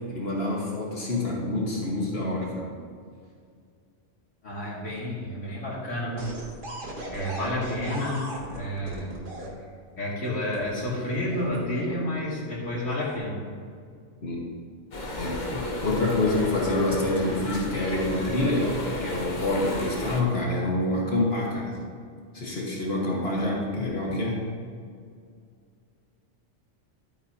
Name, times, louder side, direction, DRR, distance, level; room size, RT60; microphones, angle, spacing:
voice 1, 0.0-2.7 14.2-14.5 15.1-18.7 19.0-21.8 22.3-24.4, left 2 dB, 55° left, -3 dB, 1.8 m, -27 dB
voice 2, 4.4-6.3 6.7-8.3 8.5-9.1 10.0-13.4, left 1 dB, 90° left, -6 dB, 2.9 m, -30 dB
sound 1, 6.2-9.5 10.5-12.2 12.8-13.2, right 1 dB, 45° right, 1.5 m, -38 dB
sound 2, 14.9-20.2, left 1 dB, 40° left, 1.2 m, -33 dB
12.0 x 8.8 x 2.8 m, 2.2 s
omnidirectional pair, 1.2 m